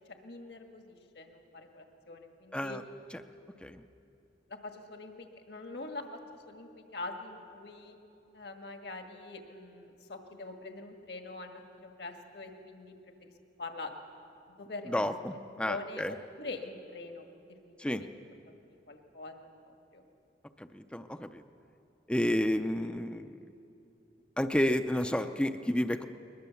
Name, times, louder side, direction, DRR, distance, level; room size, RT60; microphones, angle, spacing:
voice 1, 0.0-2.8 4.5-8.0 8.3-13.3 13.6-13.9 14.5-15.1 15.3-18.1 18.7-19.4 19.6-20.0, left 2 dB, 60° left, 4 dB, 1.7 m, -44 dB
voice 2, 14.9-15.3 15.6-16.1 17.8-18.0 20.7-21.4 22.1-23.3 24.4-26.1, left 1 dB, 5° left, 8 dB, 0.5 m, -30 dB
21.5 x 21.0 x 7.1 m, 2.8 s
head